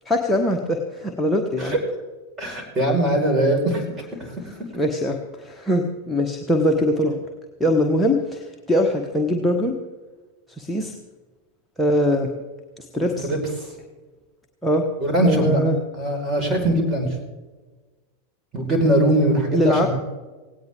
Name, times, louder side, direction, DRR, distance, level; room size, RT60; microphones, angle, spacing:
voice 1, 0.0-1.8 4.7-7.2 7.6-9.7 10.6-10.9 11.8-12.3 12.8-13.3 14.6-14.9 15.2-15.8 19.5-19.9, left 1 dB, 5° left, 0 dB, 1.3 m, -22 dB
voice 2, 2.4-3.8 4.2-4.5 13.2-13.7 15.0-15.6 15.9-17.1 18.5-19.9, right 1 dB, 20° right, 1 dB, 4.7 m, -21 dB
17.5 x 17.5 x 3.6 m, 1.3 s
figure-of-eight pair, 90°, 0 cm